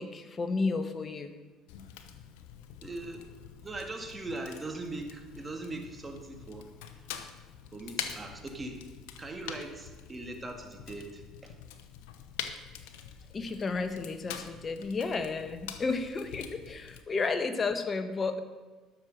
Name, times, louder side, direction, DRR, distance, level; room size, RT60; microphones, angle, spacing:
voice 1, 0.0-1.3 13.3-18.4, left 4 dB, 35° left, 9 dB, 1.2 m, -32 dB
Fire, 1.7-17.0, left 9 dB, 80° left, 0.8 m, -45 dB
voice 2, 2.8-7.2 7.7-8.8 9.2-11.6, right 2 dB, 20° right, 3 dB, 2.1 m, -41 dB
11.5 x 6.6 x 6.5 m, 1.3 s
hypercardioid pair, 70°, 0 cm